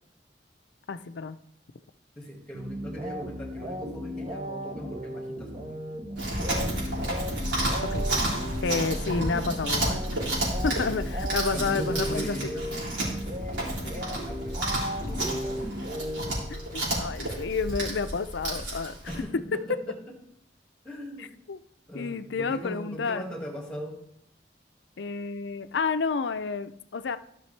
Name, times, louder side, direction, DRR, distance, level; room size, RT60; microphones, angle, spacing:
voice 1, 0.9-1.4 7.8-8.1 8.6-10.0 10.6-12.4 16.5-19.0 19.5-19.6 21.2-21.6 21.9-23.3 25.0-27.2, left 5 dB, 85° left, 12 dB, 0.5 m, -30 dB
voice 2, 2.2-5.8 6.4-6.8 9.1-9.8 10.5-11.0 11.5-12.7 13.3-14.6 15.1-15.7 19.1-20.0 20.8-21.3 21.9-24.0, equal, 5° left, 0 dB, 1.9 m, -39 dB
sound 1, 2.5-16.9, equal, 35° right, 1.0 m, -36 dB
Chewing mastication, 6.2-19.2, right 1 dB, 90° right, 4.0 m, -31 dB
14.0 x 6.1 x 3.3 m, 0.72 s
head